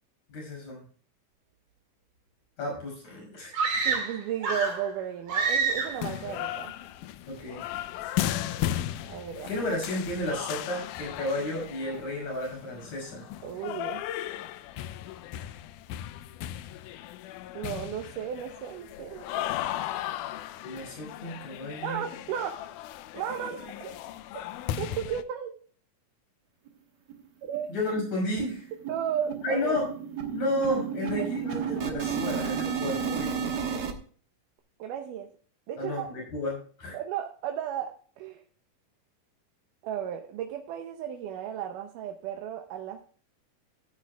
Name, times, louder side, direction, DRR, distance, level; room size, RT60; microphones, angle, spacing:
voice 1, 0.3-0.8 2.6-3.6 7.3-7.6 9.5-13.3 20.6-22.1 27.7-28.7 29.4-29.9 30.3-33.5 35.8-37.0, left 1 dB, 60° left, 0 dB, 7.1 m, -32 dB
sound 1, 3.5-4.9 5.3-6.1, right 4 dB, 35° right, 2.0 m, -27 dB
voice 2, 3.9-6.8 9.1-9.5 13.4-14.1 17.5-19.5 21.8-22.6 23.1-23.9 24.8-25.5 27.4-27.7 28.9-29.8 34.8-35.3 35.7-36.1 36.9-38.4 39.8-43.0, right 9 dB, 75° right, 4 dB, 2.3 m, -34 dB
sound 2, 5.8-25.2, left 12 dB, 80° left, 2.0 m, -36 dB
sound 3, 26.7-26.8 27.1-27.2 27.5-27.7 28.0-33.9, right 7 dB, 55° right, 1.1 m, -32 dB
16.0 x 10.0 x 2.3 m, 0.43 s
omnidirectional pair, 4.0 m